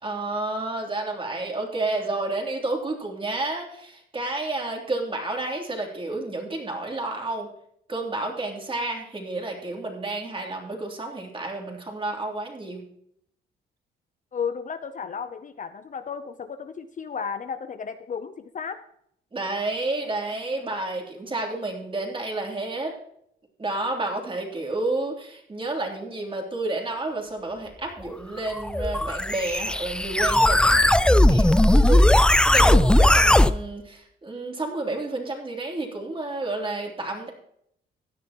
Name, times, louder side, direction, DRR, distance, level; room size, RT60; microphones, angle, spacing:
voice 1, 0.0-7.5 7.9-12.8 19.3-23.0 23.6-37.3, right 2 dB, 25° right, 1 dB, 3.2 m, -30 dB
voice 2, 14.3-18.8, left 6 dB, 40° left, 10 dB, 0.7 m, -33 dB
sound 1, 28.5-33.5, left 1 dB, 5° left, 0.4 m, -18 dB
16.0 x 10.0 x 3.0 m, 0.70 s
cardioid pair, 90°, 20 cm